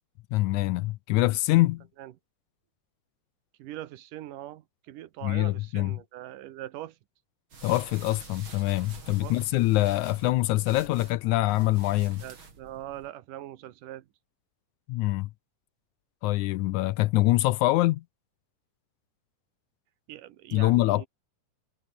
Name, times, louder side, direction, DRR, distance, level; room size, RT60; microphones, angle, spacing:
voice 1, 0.3-1.8 5.2-6.0 7.6-12.2 14.9-15.3 16.2-18.0 20.5-21.1, left 18 dB, 80° left, 1.9 m, -24 dB
voice 2, 3.6-7.0 9.2-9.3 12.2-14.1 20.1-21.1, right 14 dB, 80° right, 2.7 m, -41 dB
sound 1, 7.5-13.1, right 5 dB, 40° right, 4.0 m, -47 dB
omnidirectional pair, 3.7 m